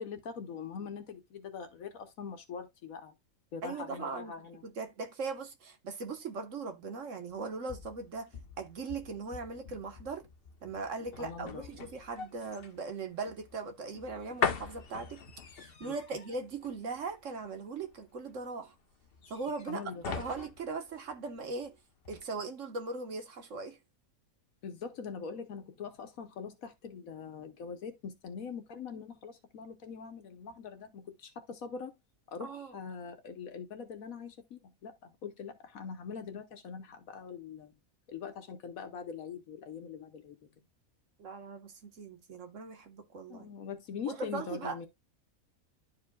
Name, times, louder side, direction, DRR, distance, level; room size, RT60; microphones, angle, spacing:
voice 1, 0.0-3.1 3.5-4.6 11.2-11.7 15.8-16.0 19.7-20.2 24.6-31.9 32.3-37.7 38.1-40.4 43.3-44.9, left 6 dB, 80° left, 1.4 m, -43 dB
voice 2, 3.6-4.3 4.6-10.2 10.6-15.2 15.5-18.7 19.3-19.8 20.1-21.8 22.1-23.8 32.4-32.7 41.2-43.5 44.1-44.8, right 4 dB, 65° right, 1.5 m, -39 dB
sound 1, 7.3-21.7 22.0-22.2, left 6 dB, 50° left, 1.0 m, -41 dB
11.5 x 4.9 x 2.3 m
omnidirectional pair, 1.4 m